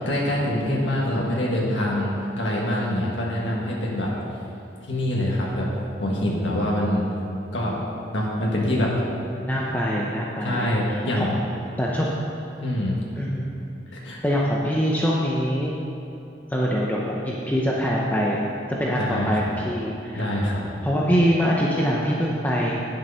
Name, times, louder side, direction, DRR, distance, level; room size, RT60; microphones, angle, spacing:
voice 1, 0.0-2.1 2.4-4.1 4.9-5.7 6.0-7.1 7.5-7.7 8.1-8.9 10.4-11.4 12.6-13.0 14.0-14.2 19.0-19.4 20.1-20.6, left 1 dB, 85° left, -4 dB, 1.7 m, -24 dB
voice 2, 9.4-11.4 11.8-12.2 13.2-13.6 14.2-15.8 16.5-18.4 18.8-20.3 20.8-22.7, equal, 10° left, -4 dB, 0.7 m, -24 dB
9.5 x 7.7 x 5.6 m, 2.9 s
head